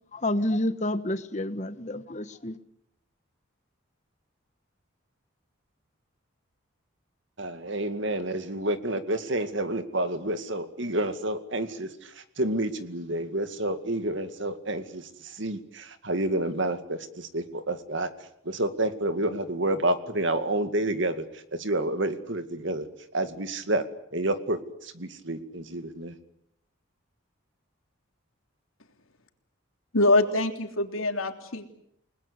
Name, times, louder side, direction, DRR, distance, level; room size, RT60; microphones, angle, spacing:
voice 1, 0.1-2.6, left 1 dB, 35° left, 12 dB, 1.3 m, -29 dB
voice 2, 7.4-18.1 18.5-22.9 23.1-23.8 24.1-26.1, right 1 dB, 60° right, 9 dB, 2.2 m, -29 dB
voice 3, 29.9-31.7, left 2 dB, 75° left, 5 dB, 3.3 m, -24 dB
30.0 x 20.0 x 8.2 m, 0.77 s
head